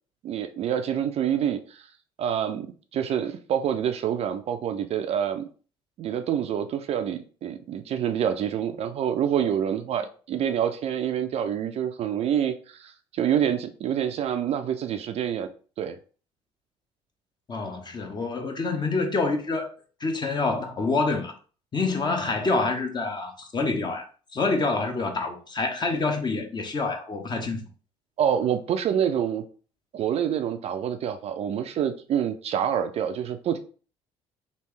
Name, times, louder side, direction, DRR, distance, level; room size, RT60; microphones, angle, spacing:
voice 1, 0.2-1.9 2.2-5.5 6.0-15.5 15.8-16.0 28.2-29.5 29.9-33.6, right 9 dB, 45° right, 0.4 m, -27 dB
voice 2, 17.5-19.7 20.0-21.3 21.7-24.0 24.3-27.6, left 3 dB, 30° left, 0.8 m, -27 dB
3.3 x 2.5 x 3.2 m
figure-of-eight pair, 55°, 15 cm